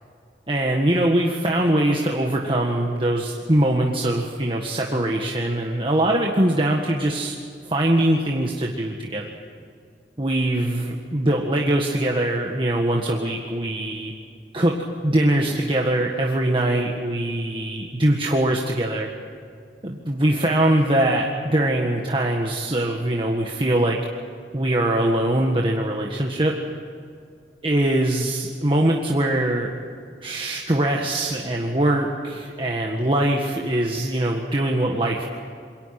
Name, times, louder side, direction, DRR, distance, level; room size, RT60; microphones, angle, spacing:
voice 1, 0.5-7.4 7.7-9.3 10.2-14.1 14.5-14.7 15.0-19.1 19.8-24.0 24.5-26.5 27.6-29.7 30.2-35.3, right 1 dB, 30° right, 0 dB, 1.7 m, -22 dB
27.5 x 23.0 x 6.0 m, 2.4 s
head